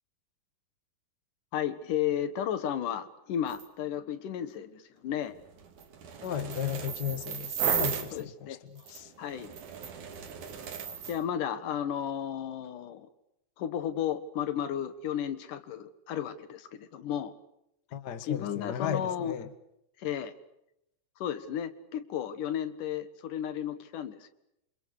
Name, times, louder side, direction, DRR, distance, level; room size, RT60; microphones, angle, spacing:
voice 1, 1.5-5.4 8.1-8.6 9.2-9.5 11.1-13.1 13.6-17.3 18.2-19.4 20.0-20.3 21.2-24.3, left 9 dB, 75° left, 12 dB, 3.0 m, -33 dB
sound 1, 3.5-3.7 5.3-8.2 8.8-11.2, right 7 dB, 65° right, 3.8 m, -35 dB
voice 2, 6.2-8.3 8.7-9.1 17.9-19.5, left 9 dB, 40° left, 10 dB, 1.6 m, -35 dB
27.5 x 27.5 x 6.6 m, 0.82 s
omnidirectional pair, 3.8 m